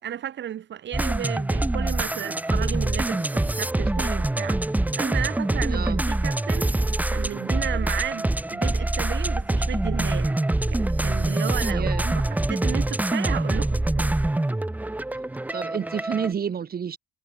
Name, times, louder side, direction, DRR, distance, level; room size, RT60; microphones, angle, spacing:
voice 1, 0.0-6.7 7.1-10.4 10.7-14.1, right 10 dB, 65° right, 3.3 m, -33 dB
sound 1, 0.9-16.3, right 2 dB, 10° right, 0.7 m, -25 dB
voice 2, 5.7-6.0 11.7-12.2 15.5-17.0, right 7 dB, 50° right, 3.8 m, -29 dB
cardioid pair, 90°, 20 cm